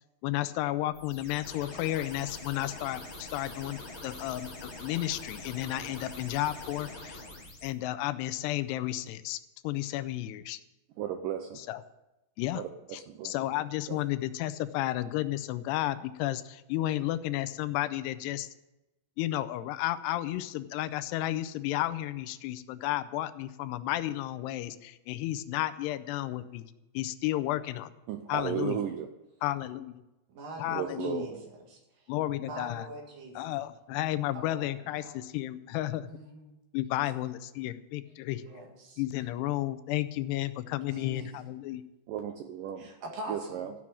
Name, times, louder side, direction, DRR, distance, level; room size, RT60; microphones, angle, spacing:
voice 1, 0.2-7.2 7.6-10.6 11.7-11.8 12.4-12.6 12.9-18.5 19.2-26.7 26.9-27.9 28.3-28.8 29.4-30.0 30.6-31.3 32.1-32.9 33.4-36.1 36.7-38.4 39.0-41.8, left 15 dB, 85° left, 14 dB, 2.7 m, -32 dB
sound 1, 0.9-7.7, left 2 dB, 40° left, 0.8 m, -44 dB
voice 2, 11.0-11.6 12.5-13.3 13.9-14.0 28.1-29.1 30.7-31.4 42.1-42.9 43.3-43.7, right 9 dB, 90° right, 6 dB, 1.9 m, -35 dB
voice 3, 30.3-32.1 32.4-33.5 34.3-35.3 36.1-36.5 38.4-39.3 40.4-41.5 42.8-43.7, right 1 dB, 60° right, 1 dB, 3.5 m, -45 dB
14.0 x 6.1 x 8.5 m, 0.98 s
omnidirectional pair, 4.7 m